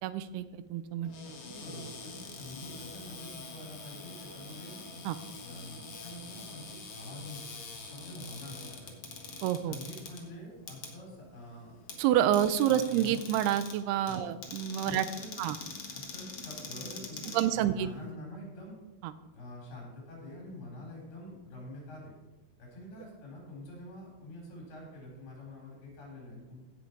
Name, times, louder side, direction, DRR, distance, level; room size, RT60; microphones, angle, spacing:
voice 1, 0.0-1.1 5.1-5.2 9.4-9.8 12.0-15.1 15.4-15.6 17.3-17.9 19.0-19.1, right 11 dB, 90° right, 13 dB, 2.7 m, -28 dB
Cupboard open or close, 1.0-18.1, left 4 dB, 55° left, 1.7 m, -45 dB
voice 2, 1.2-4.8 5.4-7.6 7.9-9.1 9.7-11.8 12.6-13.2 14.1-14.2 14.8-15.3 15.9-18.7 19.3-22.1 22.6-26.6, left 1 dB, 80° left, -2 dB, 6.2 m, -46 dB
16.0 x 6.9 x 4.7 m, 1.1 s
omnidirectional pair, 4.5 m